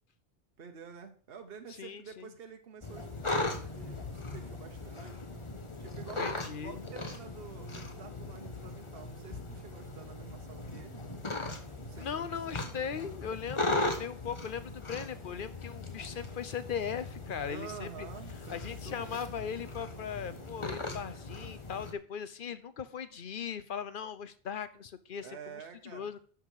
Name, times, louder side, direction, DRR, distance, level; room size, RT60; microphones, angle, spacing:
voice 1, 0.6-5.2 5.8-6.4 6.6-11.1 11.8-12.3 12.8-12.9 17.4-19.2 25.2-26.1, right 6 dB, 65° right, 5 dB, 1.2 m, -49 dB
voice 2, 1.8-2.3 6.2-6.8 12.0-18.1 18.5-26.2, left 7 dB, 55° left, 13 dB, 0.9 m, -39 dB
sound 1, 2.8-21.9, left 2 dB, 30° left, 1.1 m, -38 dB
11.5 x 6.1 x 4.9 m, 0.43 s
omnidirectional pair, 1.1 m